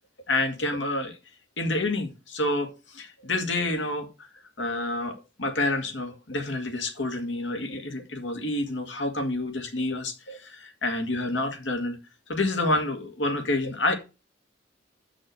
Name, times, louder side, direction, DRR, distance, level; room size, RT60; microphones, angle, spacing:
voice 1, 0.3-1.2 1.6-4.3 4.6-12.0 12.3-13.9, left 2 dB, 75° left, 2.0 m, -28 dB
6.3 x 6.3 x 6.6 m
head